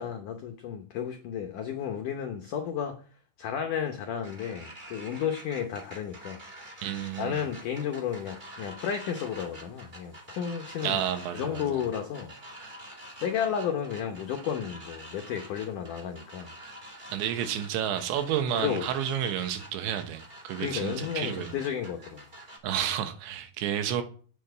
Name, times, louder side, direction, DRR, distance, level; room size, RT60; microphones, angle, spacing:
voice 1, 0.0-3.0 3.4-6.4 7.2-11.0 11.3-12.3 13.2-16.5 18.5-18.9 20.6-22.2, left 8 dB, 85° left, 1.8 m, -32 dB
sound 1, 4.2-22.6, right 1 dB, 30° right, 0.9 m, -47 dB
voice 2, 6.8-7.4 10.8-11.8 17.1-21.5 22.6-24.0, right 10 dB, 85° right, 3.5 m, -31 dB
8.7 x 7.2 x 8.0 m
omnidirectional pair, 5.2 m